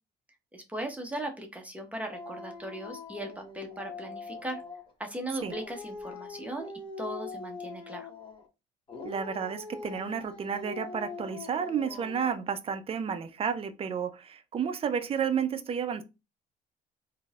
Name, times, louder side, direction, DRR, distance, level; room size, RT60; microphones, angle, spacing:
voice 1, 0.5-4.6 5.0-6.7 7.0-8.1, right 1 dB, 10° right, 0.8 m, -38 dB
Dog, 2.1-4.9 5.4-8.5 8.9-12.4, left 4 dB, 30° left, 0.9 m, -42 dB
voice 2, 9.0-16.0, right 7 dB, 35° right, 0.5 m, -31 dB
3.7 x 2.7 x 2.4 m
cardioid pair, 110°, 17 cm